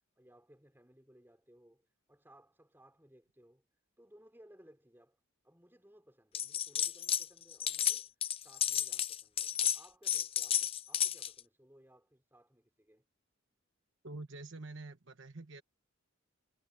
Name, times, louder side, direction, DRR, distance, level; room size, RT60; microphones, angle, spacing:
voice 1, 0.0-3.6 4.0-8.1 8.4-13.0, right 1 dB, 10° right, 4.1 m, -62 dB
sound 1, 6.3-7.3 7.5-11.4, left 10 dB, 25° left, 0.4 m, -32 dB
voice 2, 14.0-15.6, right 2 dB, 60° right, 1.2 m, -46 dB
head